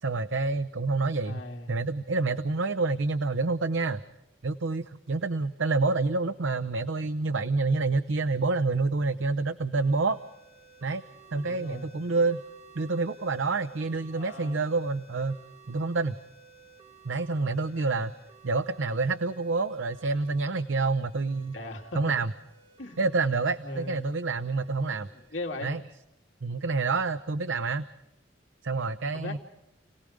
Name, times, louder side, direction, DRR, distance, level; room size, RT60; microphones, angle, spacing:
voice 1, 0.0-1.4 1.7-4.0 4.4-10.2 10.8-11.0 11.3-12.4 12.8-15.4 15.7-16.2 17.0-18.1 18.4-21.5 21.9-22.3 23.0-25.1 25.6-25.8 26.4-27.9 28.6-29.4, right 3 dB, 85° right, 10 dB, 0.7 m, -28 dB
voice 2, 1.2-1.7 11.3-11.9 14.1-14.6 21.5-22.1 22.8-23.2 23.6-24.1 24.9-25.0 25.3-25.7 29.1-29.4, left 1 dB, 80° left, 1 dB, 2.8 m, -38 dB
sound 1, 9.8-25.3, right 4 dB, 35° right, 1.8 m, -55 dB
30.0 x 18.0 x 5.1 m, 0.90 s
head